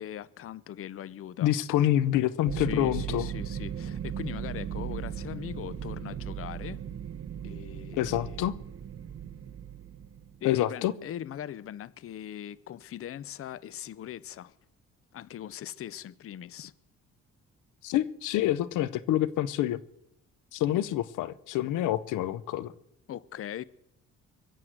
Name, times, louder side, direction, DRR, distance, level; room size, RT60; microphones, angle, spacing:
voice 1, 0.0-1.5 2.5-6.8 7.4-8.5 10.4-14.6 15.1-16.7 23.1-23.6, left 11 dB, 50° left, 0.6 m, -40 dB
voice 2, 1.4-3.3 8.0-8.6 10.4-10.9 17.8-19.8 20.5-22.7, left 13 dB, 90° left, 0.7 m, -27 dB
sound 1, 2.4-10.4, right 9 dB, 50° right, 1.1 m, -37 dB
23.0 x 7.8 x 7.9 m
cardioid pair, 90°, 30 cm